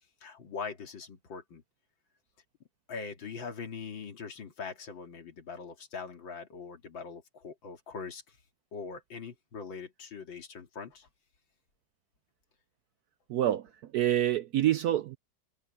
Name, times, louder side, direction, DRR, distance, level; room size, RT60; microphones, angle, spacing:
voice 1, 0.2-1.6 2.9-8.2 8.7-11.1, left 5 dB, 85° left, 3.0 m, -42 dB
voice 2, 13.3-13.7 13.9-15.2, right 12 dB, 75° right, 0.9 m, -26 dB
omnidirectional pair, 2.1 m